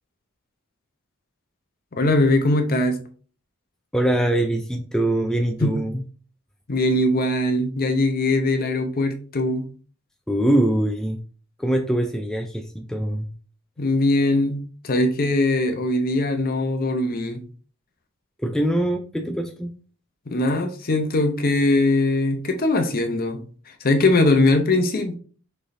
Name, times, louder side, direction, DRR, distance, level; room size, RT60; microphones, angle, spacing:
voice 1, 1.9-3.0 5.6-5.8 6.7-9.7 13.8-17.4 20.3-23.4 23.8-25.1, left 2 dB, 45° left, 0.7 m, -21 dB
voice 2, 3.9-6.0 10.3-11.2 11.6-13.3 18.4-19.7, right 1 dB, 5° left, 0.4 m, -23 dB
6.2 x 3.2 x 2.6 m
head